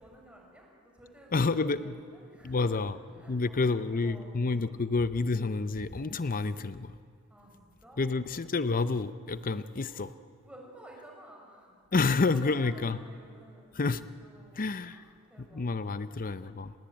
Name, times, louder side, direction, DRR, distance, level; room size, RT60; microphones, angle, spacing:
voice 1, 0.0-5.0 5.3-5.6 5.9-6.4 7.3-8.3 9.9-10.1 10.4-13.8 14.2-16.2, right 1 dB, 5° right, -1 dB, 5.9 m, -54 dB
voice 2, 1.3-1.9 2.4-2.9 3.3-6.9 8.0-10.1 11.9-13.0 13.8-14.0 14.6-15.0 15.5-16.7, left 3 dB, 40° left, 13 dB, 0.6 m, -29 dB
28.5 x 19.5 x 9.0 m, 2.4 s
head